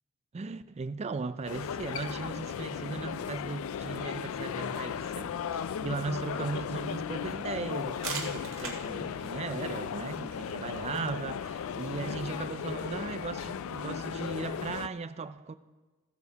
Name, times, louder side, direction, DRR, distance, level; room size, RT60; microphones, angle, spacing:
voice 1, 0.3-15.5, right 4 dB, 30° right, 0.4 m, -37 dB
sound 1, 1.5-14.9, left 7 dB, 70° left, 0.3 m, -36 dB
sound 2, 7.7-13.2, right 5 dB, 65° right, 1.6 m, -45 dB
15.5 x 7.0 x 4.0 m
head